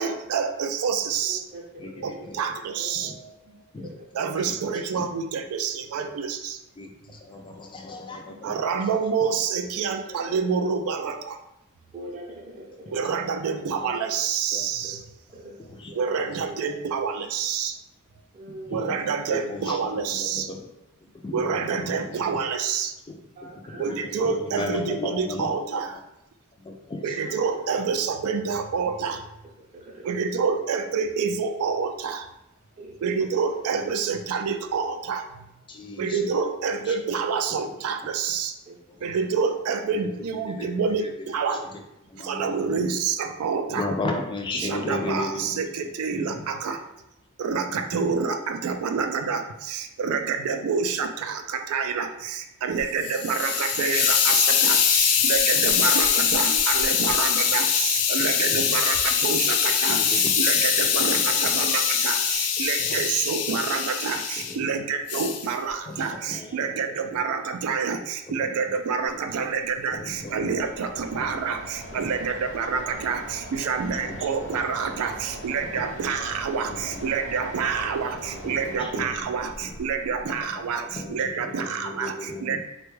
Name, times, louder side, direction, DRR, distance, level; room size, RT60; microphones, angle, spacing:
voice 1, 0.0-1.4 2.0-3.6 4.1-6.6 8.3-11.4 12.9-15.0 16.0-17.8 18.7-20.5 21.3-22.9 23.8-26.0 27.0-29.2 30.0-32.3 33.0-35.5 36.0-38.5 39.0-41.6 42.2-43.9 44.5-46.8 47.4-82.6, right 5 dB, 80° right, 7 dB, 0.3 m, -28 dB
voice 2, 1.2-2.1 2.8-3.1 3.8-3.9 10.0-10.5 11.9-13.2 13.9-14.0 14.8-14.9 15.3-15.5 15.9-16.0 16.4-16.6 18.3-18.8 23.4-24.2 29.0-29.2 29.6-30.0 32.8-33.0 38.7-38.8 39.3-39.4, right 1 dB, 35° right, -3 dB, 0.6 m, -43 dB
voice 3, 1.8-2.4 3.0-3.2 3.7-3.9 4.4-4.6 5.0-5.1 6.8-8.9 13.6-13.9 14.5-14.7 15.6-16.0 16.3-16.4 18.6-18.9 19.3-20.7 21.2-22.4 23.1-26.0 26.6-27.5 35.7-36.3 36.9-37.0 38.9-39.1 40.4-41.1 41.7-41.8 42.1-42.9 43.7-46.4 47.7-48.1 59.9-60.9 62.9-63.0 64.4-64.7 65.9-66.7 68.3-68.8 69.4-69.5 69.9-70.6 70.9-71.4 71.9-72.1 73.8-74.6 75.6-76.0 76.7-77.0 78.4-79.3 79.6-79.8 80.2-80.6 81.0-82.6, left 2 dB, 20° left, 2 dB, 0.4 m, -36 dB
Hiss, 52.8-64.5 65.1-65.5, left 7 dB, 90° left, 0.4 m, -23 dB
Mechanisms, 69.0-81.4, equal, 55° left, 0.7 m, -41 dB
3.4 x 2.2 x 3.2 m, 0.86 s
head